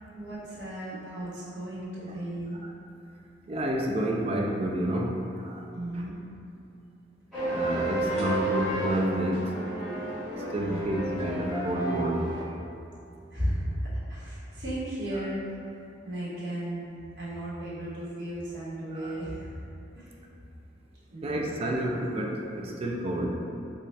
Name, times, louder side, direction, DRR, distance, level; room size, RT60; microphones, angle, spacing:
voice 1, 0.1-2.6 5.7-6.1 10.5-10.9 13.3-16.9 17.2-19.6 19.9-20.1 21.1-21.5, right 1 dB, 65° right, -10 dB, 1.2 m, -35 dB
voice 2, 3.5-5.1 5.4-5.6 7.5-9.5 10.5-12.3 15.2-15.3 19.0-19.1 21.2-23.3, right 1 dB, 30° right, -1 dB, 0.3 m, -29 dB
sound 1, 7.3-12.4, right 1 dB, 5° left, 1.4 m, -31 dB
4.0 x 2.3 x 3.1 m, 2.6 s
head